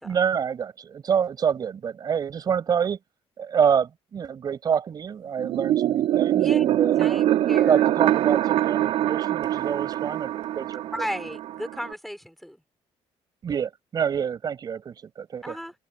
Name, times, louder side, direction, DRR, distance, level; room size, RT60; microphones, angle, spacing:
voice 1, 0.0-3.0 3.4-7.2 7.6-10.9 13.4-15.6, right 7 dB, 40° right, 6.7 m, -27 dB
sound 1, 5.4-11.9, right 12 dB, 80° right, 2.7 m, -23 dB
voice 2, 7.0-7.8 10.9-12.6 15.4-15.7, equal, ahead, 4.0 m, -35 dB
cardioid pair, 155°, 11 cm